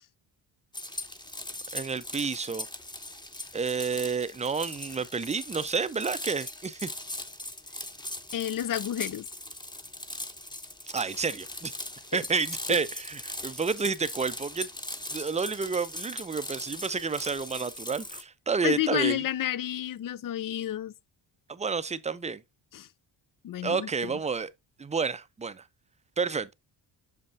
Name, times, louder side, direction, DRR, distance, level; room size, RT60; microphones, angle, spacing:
sound 1, 0.7-18.2, left 1 dB, 10° left, 0.8 m, -40 dB
voice 1, 1.7-2.7 3.5-6.9 10.9-11.7 12.1-14.7 15.1-19.2 21.5-22.4 23.6-24.5 24.8-25.6 26.2-26.5, right 5 dB, 15° right, 0.5 m, -30 dB
voice 2, 8.3-9.3 18.6-20.9 22.7-22.9 23.4-24.2, left 12 dB, 45° left, 0.4 m, -30 dB
6.6 x 5.5 x 2.6 m
cardioid pair, 65°, 50 cm